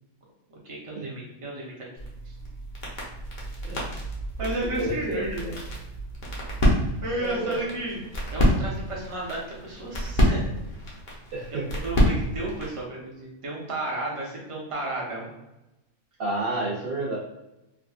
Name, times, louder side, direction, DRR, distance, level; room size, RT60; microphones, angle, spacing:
voice 1, 0.6-1.9 2.2-2.3 4.4-5.5 6.6-6.7 7.0-8.0 8.3-10.4 11.5-15.3, right 2 dB, 30° right, -4 dB, 0.7 m, -33 dB
sound 1, 2.0-12.8, equal, 45° left, 0.7 m, -28 dB
voice 2, 4.8-5.6 7.2-7.6 11.3-11.6 16.2-17.2, right 2 dB, 70° right, -4 dB, 0.5 m, -30 dB
3.5 x 2.3 x 2.4 m, 0.95 s
omnidirectional pair, 1.5 m